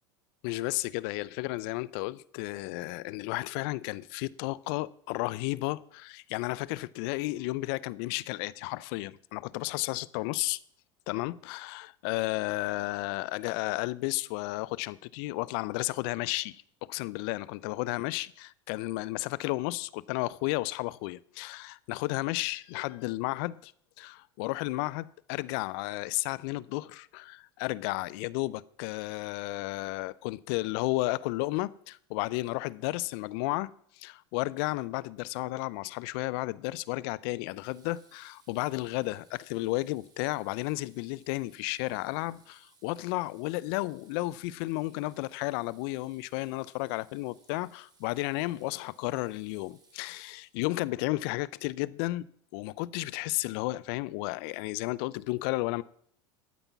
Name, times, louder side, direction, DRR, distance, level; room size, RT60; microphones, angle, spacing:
voice 1, 0.4-10.6 11.1-23.7 24.0-52.3 52.5-55.8, left 20 dB, 65° left, 0.6 m, -33 dB
Water tap faucet / Sink (filling or washing), 35.8-36.1 37.4-50.9, right 4 dB, 30° right, 3.2 m, -65 dB
12.5 x 8.9 x 5.8 m
hypercardioid pair, 100°, 14 cm